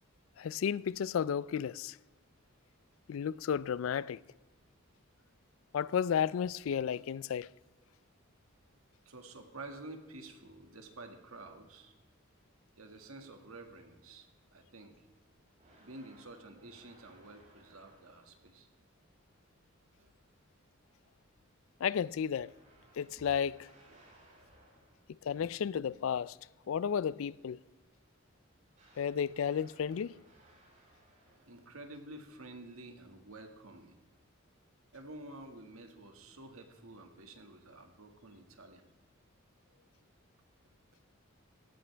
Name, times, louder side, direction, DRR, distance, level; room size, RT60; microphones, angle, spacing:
voice 1, 0.4-2.0 3.1-4.2 5.7-7.5 21.8-22.5 23.0-23.7 25.2-26.4 26.7-27.6 29.0-30.1, left 7 dB, 70° left, 0.3 m, -33 dB
voice 2, 9.1-11.9 12.8-14.3 14.5-14.9 15.8-18.7 20.0-20.1 23.9-24.1 31.4-34.0 34.9-38.8, right 2 dB, 90° right, 1.9 m, -50 dB
sound 1, 15.6-18.5 22.3-25.2 28.7-31.8, right 1 dB, 40° right, 5.0 m, -64 dB
16.5 x 13.5 x 3.4 m
head